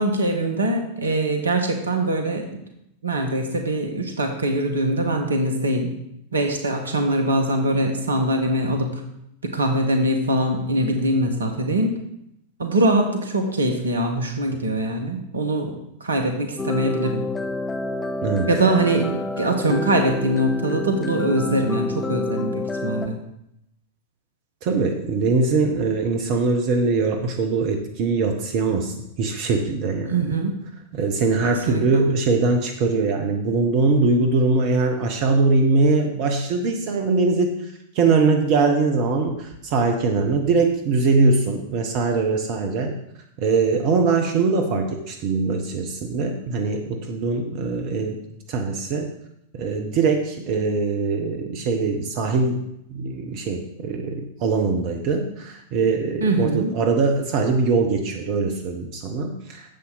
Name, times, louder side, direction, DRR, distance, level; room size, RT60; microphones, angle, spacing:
voice 1, 0.0-2.5 3.0-5.9 6.3-9.0 9.4-12.0 12.6-17.2 18.5-23.2 30.0-30.6 31.7-32.0 56.2-56.7, right 1 dB, 70° right, 5 dB, 1.5 m, -23 dB
sound 1, 16.6-23.1, left 3 dB, 15° left, 0.7 m, -28 dB
voice 2, 18.2-18.5 24.6-30.1 30.9-37.6 37.9-43.0 43.4-48.2 48.5-49.1 49.5-52.6 52.9-59.7, right 4 dB, 45° right, 4 dB, 1.1 m, -22 dB
10.5 x 7.5 x 4.1 m, 0.80 s
figure-of-eight pair, 90°, 0 cm